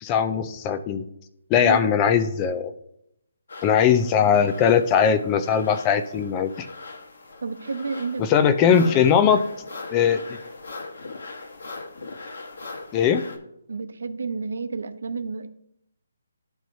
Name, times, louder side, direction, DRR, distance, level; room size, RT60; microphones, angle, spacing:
voice 1, 0.0-1.0 1.5-2.7 3.6-6.7 8.2-9.4 9.9-10.2 12.9-13.2, left 7 dB, 15° left, 10 dB, 0.4 m, -20 dB
voice 2, 1.6-1.9 7.4-8.3 8.6-9.3 13.7-15.5, right 4 dB, 75° right, 9 dB, 0.8 m, -31 dB
sound 1, 3.5-13.4, left 3 dB, 60° left, 1.2 m, -40 dB
13.0 x 4.5 x 2.7 m, 0.77 s
hypercardioid pair, 180°, 0 cm